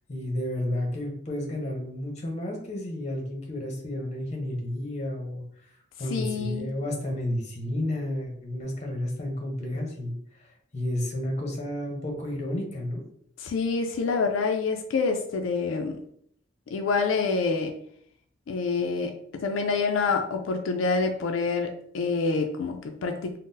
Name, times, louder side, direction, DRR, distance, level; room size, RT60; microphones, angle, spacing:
voice 1, 0.1-13.0, left 1 dB, 35° left, 1 dB, 0.7 m, -32 dB
voice 2, 6.1-6.7 13.4-16.0 16.7-17.7 18.5-23.4, left 4 dB, 85° left, 4 dB, 0.4 m, -27 dB
3.7 x 2.0 x 2.6 m, 0.66 s
head